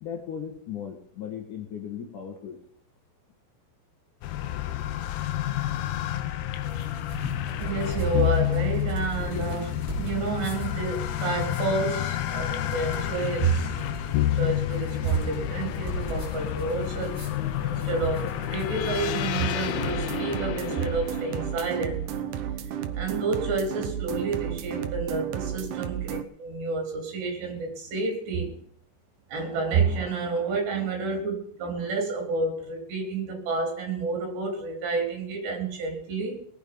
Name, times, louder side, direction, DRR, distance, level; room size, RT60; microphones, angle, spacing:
voice 1, 0.0-2.6, left 8 dB, 55° left, 2 dB, 2.6 m, -37 dB
sound 1, 4.2-22.1, left 12 dB, 80° left, 2.1 m, -30 dB
sound 2, 6.5-20.0, right 1 dB, 5° right, 7.0 m, -40 dB
voice 2, 7.4-13.7 14.1-17.2 17.6-22.1 22.9-28.6 29.3-36.4, right 4 dB, 70° right, 2 dB, 5.5 m, -29 dB
sound 3, 19.7-26.2, right 10 dB, 85° right, 1.8 m, -33 dB
19.5 x 10.5 x 5.2 m, 0.63 s
omnidirectional pair, 5.1 m